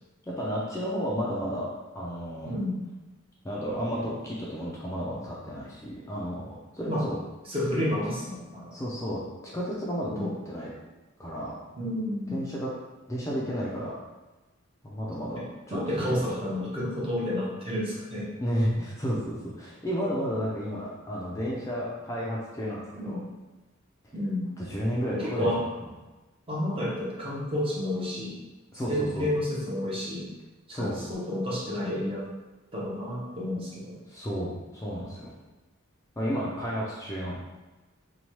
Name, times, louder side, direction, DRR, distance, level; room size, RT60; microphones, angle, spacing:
voice 1, 0.3-1.7 1.9-2.5 3.4-7.2 8.7-10.7 11.2-11.6 12.3-12.7 13.1-13.9 14.8-15.4 15.7-16.2 18.4-23.2 24.6-25.5 28.7-29.3 30.7-31.0 34.1-35.3 36.2-37.3, equal, 15° left, -6 dB, 0.4 m, -32 dB
voice 2, 2.5-2.8 6.9-7.1 7.5-8.7 10.1-10.3 11.8-12.4 15.2-15.4 15.7-18.3 23.0-23.3 24.1-24.5 25.1-25.6 26.5-28.4 28.9-30.3 30.7-32.3 32.7-34.0, left 1 dB, 25° right, -5 dB, 0.7 m, -30 dB
2.8 x 2.2 x 3.0 m, 1.1 s
head